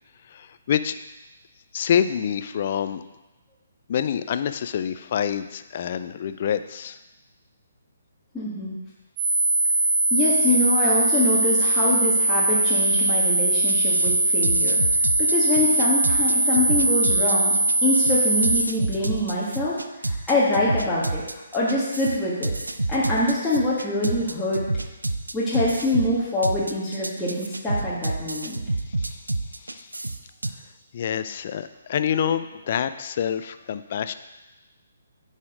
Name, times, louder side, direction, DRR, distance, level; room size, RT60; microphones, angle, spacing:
voice 1, 0.3-1.0 1.7-3.0 3.9-7.0 29.0-29.2 29.6-29.9 30.9-34.1, left 8 dB, 45° left, 11 dB, 0.4 m, -26 dB
voice 2, 8.3-8.7 10.1-17.5 17.8-19.8 20.1-21.2 21.5-22.5 22.9-24.6 25.3-28.6, left 2 dB, 10° left, -10 dB, 1.6 m, -24 dB
sound 1, 9.2-18.6, right 2 dB, 25° right, 2.7 m, -21 dB
sound 2, 13.7-30.5, right 2 dB, 85° right, 0.5 m, -29 dB
9.7 x 4.2 x 5.0 m, 1.1 s
figure-of-eight pair, 135°, 0 cm